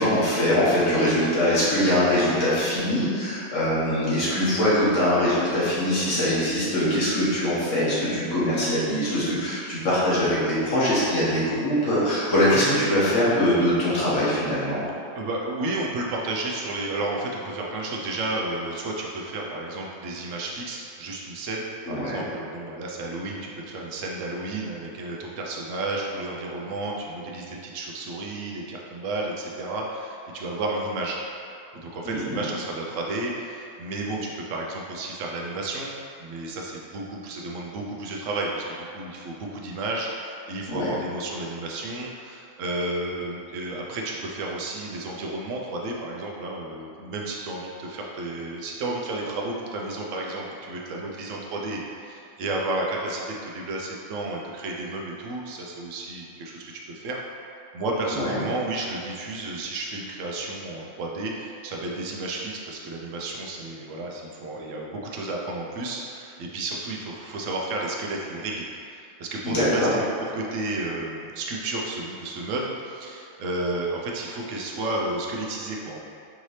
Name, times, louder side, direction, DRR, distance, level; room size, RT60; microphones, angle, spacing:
voice 1, 0.0-14.8 21.9-22.2 32.0-32.4 40.7-40.9 58.1-58.4 69.4-69.9, left 1 dB, 80° left, -10 dB, 1.6 m, -22 dB
voice 2, 15.1-31.2 31.7-35.9 36.2-57.2 57.7-76.0, right 2 dB, 80° right, -1 dB, 1.0 m, -32 dB
4.9 x 2.8 x 3.2 m, 2.5 s
omnidirectional pair, 1.3 m